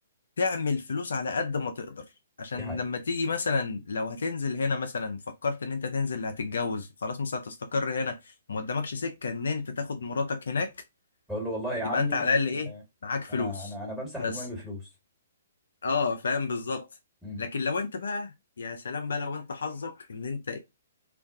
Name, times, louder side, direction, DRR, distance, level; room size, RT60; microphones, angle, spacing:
voice 1, 0.4-2.0 2.4-10.7 11.8-12.7 13.0-13.7 14.2-14.3 15.8-16.9 17.4-20.6, left 4 dB, 70° left, 0.4 m, -30 dB
voice 2, 11.3-12.3 12.7-12.8 13.3-14.9 17.2-17.4, equal, 5° right, 1.5 m, -35 dB
2.3 x 2.2 x 2.5 m
figure-of-eight pair, 125°, 0 cm